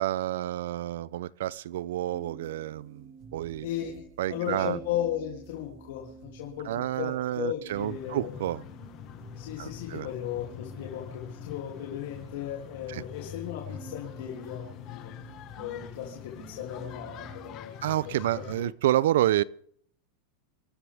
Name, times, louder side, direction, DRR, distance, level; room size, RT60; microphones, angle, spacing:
voice 1, 0.0-3.7 4.2-4.8 6.7-8.6 9.6-10.1 12.9-13.0 17.8-19.4, right 13 dB, 80° right, 0.6 m, -29 dB
sound 1, 2.1-17.6, right 5 dB, 50° right, 3.0 m, -51 dB
voice 2, 3.6-4.0 4.3-8.3 9.4-15.1 15.6-17.8, left 11 dB, 75° left, 3.0 m, -36 dB
sound 2, 7.7-18.7, left 10 dB, 45° left, 1.6 m, -44 dB
27.0 x 12.0 x 3.6 m
supercardioid pair, 130°, 0 cm